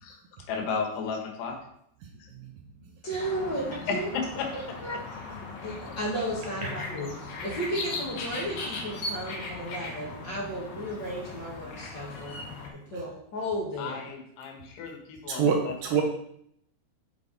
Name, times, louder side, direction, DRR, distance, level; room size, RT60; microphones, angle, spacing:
voice 1, 0.5-1.6 2.2-2.3 3.9-4.5 11.9-12.2 13.8-16.0, left 5 dB, 85° left, 3 dB, 3.4 m, -34 dB
voice 2, 3.0-4.1 4.5-4.9 5.3-12.3 12.9-14.1, right 1 dB, 45° left, -5 dB, 1.4 m, -34 dB
sound 1, 3.2-12.7, left 3 dB, 65° left, 2.9 m, -38 dB
voice 3, 15.3-16.0, right 6 dB, 70° right, 2 dB, 2.4 m, -25 dB
7.6 x 7.1 x 4.1 m, 0.72 s
omnidirectional pair, 4.6 m